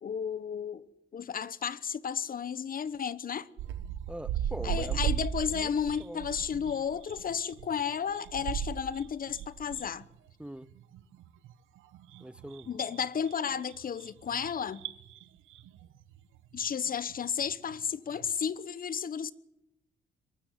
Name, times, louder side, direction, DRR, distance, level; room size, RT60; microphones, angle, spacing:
voice 1, 0.0-3.5 4.6-10.1 12.7-14.8 16.5-19.3, left 7 dB, 45° left, 1.1 m, -33 dB
sound 1, 3.6-17.8 18.1-18.3, right 10 dB, 90° right, 1.3 m, -38 dB
voice 2, 4.1-5.1 5.5-5.7 6.0-6.2 10.4-10.7 12.2-12.8, right 1 dB, 5° right, 0.7 m, -41 dB
23.5 x 13.5 x 9.6 m
cardioid pair, 90°, 20 cm